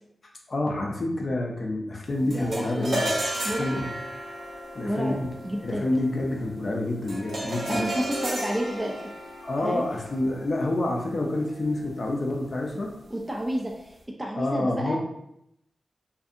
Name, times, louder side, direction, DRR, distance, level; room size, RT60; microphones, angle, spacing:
voice 1, 0.5-3.2 3.5-3.9 4.7-5.3 5.6-7.8 9.4-12.9 14.3-15.0, left 2 dB, 55° left, 0 dB, 0.4 m, -28 dB
voice 2, 2.2-3.0 3.4-3.8 4.8-5.9 7.7-9.1 9.6-9.8 13.1-15.0, right 1 dB, 15° right, 0 dB, 0.3 m, -30 dB
sound 1, 2.3-11.8, right 1 dB, 80° right, 0.8 m, -34 dB
2.6 x 2.5 x 2.4 m, 0.80 s
wide cardioid pair, 80°, 0 cm